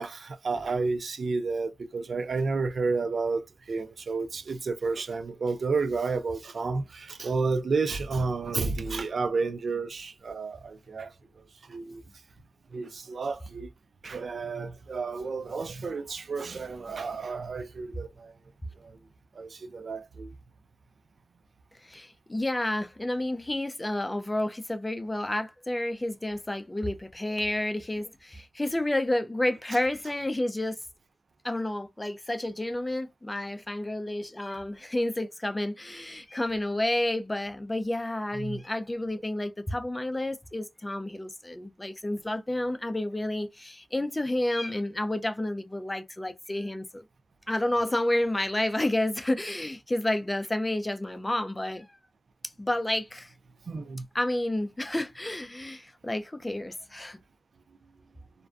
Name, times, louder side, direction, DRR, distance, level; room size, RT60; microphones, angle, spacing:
voice 1, 0.0-3.4 3.7-11.1 11.7-12.0 12.7-13.7 14.0-18.3 19.4-20.3 38.4-38.6 53.7-54.0, right 4 dB, 70° right, 0.3 m, -31 dB
voice 2, 21.8-30.8 31.4-47.0 47.5-52.0 52.6-53.3 54.1-57.2, left 1 dB, 20° left, 0.3 m, -30 dB
2.5 x 2.1 x 2.3 m
wide cardioid pair, 110°, 0 cm